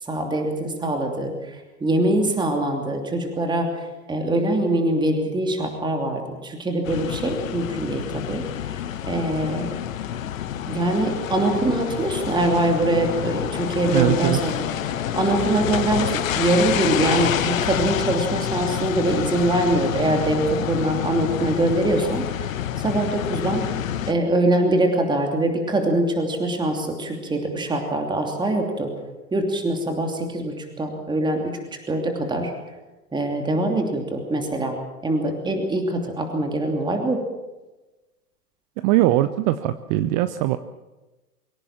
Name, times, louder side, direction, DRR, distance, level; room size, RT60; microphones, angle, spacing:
voice 1, 0.0-8.4 9.0-9.8 10.7-14.7 15.1-22.6 22.8-23.6 24.1-28.9 29.3-31.6 31.9-32.5 33.1-34.7 35.0-37.2, right 1 dB, 10° right, 3 dB, 2.9 m, -23 dB
sound 1, 6.8-24.1, left 10 dB, 55° left, 1.3 m, -28 dB
voice 2, 13.9-14.4 38.8-40.6, right 15 dB, 25° right, 12 dB, 0.6 m, -21 dB
24.0 x 17.0 x 7.4 m, 1.1 s
figure-of-eight pair, 100°, 47 cm